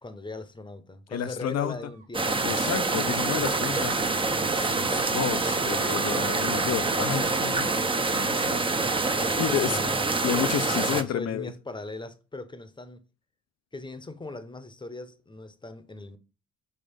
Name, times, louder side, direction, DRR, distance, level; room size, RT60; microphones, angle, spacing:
voice 1, 0.0-3.2 9.2-10.1 10.7-13.0 13.7-16.2, left 2 dB, 15° left, 0.9 m, -39 dB
voice 2, 1.1-1.8 2.2-3.9 4.5-7.8 8.1-8.6 8.9-9.8 10.2-11.5, left 10 dB, 55° left, 0.6 m, -31 dB
sound 1, 1.5-2.0 2.4-2.6 2.9-3.2 3.5-4.2 4.6-5.2 5.5-6.3, right 9 dB, 50° right, 1.7 m, -47 dB
sound 2, 2.1-11.0, right 3 dB, 15° right, 0.7 m, -26 dB
5.6 x 3.8 x 5.2 m
cardioid pair, 90°, 30 cm